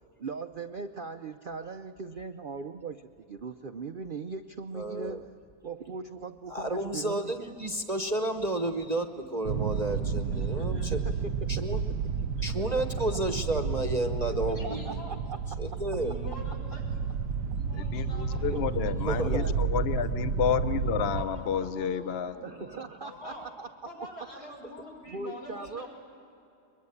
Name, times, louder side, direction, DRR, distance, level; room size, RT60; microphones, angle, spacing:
voice 1, 0.2-5.2 5.6-7.5 10.9-11.5 12.7-12.8 14.5-15.4 18.4-18.6 19.1-19.8 22.4-23.7 24.4-24.5 25.1-25.8, right 4 dB, 60° right, 7 dB, 0.5 m, -39 dB
voice 2, 4.7-5.2 6.5-11.0 11.5-11.8 12.4-15.0 15.6-16.2 19.0-19.4, right 2 dB, 30° right, 6 dB, 0.9 m, -31 dB
sound 1, 9.4-21.3, right 6 dB, 90° right, 1.5 m, -31 dB
voice 3, 10.3-11.1 11.5-11.8 12.6-12.7 14.5-15.1 15.9-16.8 17.5-19.2 21.1-23.4 23.8-25.9, left 1 dB, 85° left, -1 dB, 6.6 m, -46 dB
voice 4, 17.7-22.3, left 8 dB, 50° left, 11 dB, 0.8 m, -30 dB
22.5 x 22.5 x 9.7 m, 2.7 s
omnidirectional pair, 1.7 m